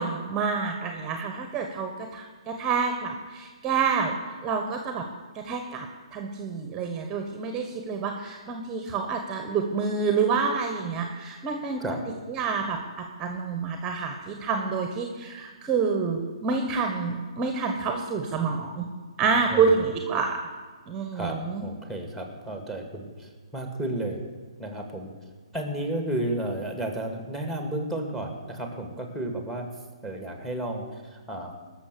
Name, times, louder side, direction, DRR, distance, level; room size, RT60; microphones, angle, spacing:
voice 1, 0.0-5.0 5.4-5.9 6.1-11.8 12.3-18.9 19.2-20.4 20.9-21.6, right 5 dB, 20° right, 4 dB, 1.2 m, -28 dB
voice 2, 19.5-19.9 21.1-24.2 24.6-25.1 25.5-29.7 30.0-31.5, right 1 dB, 5° left, 4 dB, 2.0 m, -32 dB
20.0 x 6.7 x 6.9 m, 1.4 s
hypercardioid pair, 135°, 3 cm